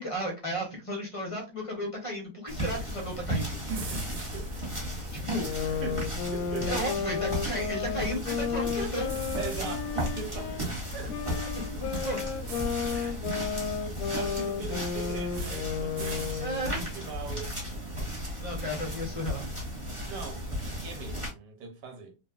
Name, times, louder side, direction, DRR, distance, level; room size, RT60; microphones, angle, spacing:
voice 1, 0.0-3.6 5.1-5.5 6.7-9.1 11.0-11.1 11.5-12.2 12.9-13.2 16.4-16.9 18.4-19.5, equal, 35° left, 0.5 m, -34 dB
sound 1, 2.5-21.3, equal, 20° right, 1.3 m, -35 dB
sound 2, 3.7-5.8 9.0-9.9 12.4-13.1 15.3-15.6 16.0-16.3, right 3 dB, 65° right, 0.4 m, -43 dB
voice 2, 3.7-4.5 5.4-6.7 9.4-10.6 10.9-11.1 13.3-13.6 13.9-16.4 16.7-17.5 20.1-22.1, right 6 dB, 85° right, 1.5 m, -40 dB
sound 3, 5.4-10.6 11.1-16.7, left 7 dB, 70° left, 1.0 m, -33 dB
3.1 x 2.6 x 2.3 m
omnidirectional pair, 1.8 m